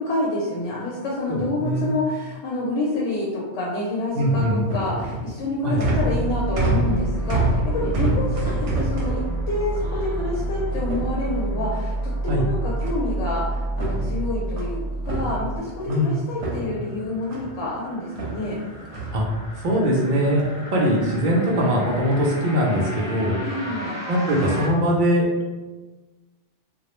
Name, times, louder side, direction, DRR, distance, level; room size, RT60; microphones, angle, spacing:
voice 1, 0.0-9.2 9.5-18.6 23.4-24.0, left 2 dB, 85° left, -4 dB, 0.9 m, -28 dB
voice 2, 1.3-1.9 4.1-4.6 5.6-5.8 8.0-8.2 12.3-12.4 15.9-16.2 19.1-19.2 19.6-23.4 24.1-25.3, equal, 55° right, -2 dB, 0.6 m, -21 dB
sound 1, 4.2-11.7 12.8-13.3 13.6-16.1 16.4-17.6 18.1-19.8 20.2-20.7 21.0-21.4 22.1-22.4 23.0-23.3, right 2 dB, 75° right, 0.9 m, -29 dB
sound 2, 5.9-15.6, right 2 dB, 15° left, 0.6 m, -28 dB
sound 3, 16.3-24.7, left 1 dB, 55° left, 0.9 m, -38 dB
2.3 x 2.0 x 2.9 m, 1.3 s
omnidirectional pair, 1.2 m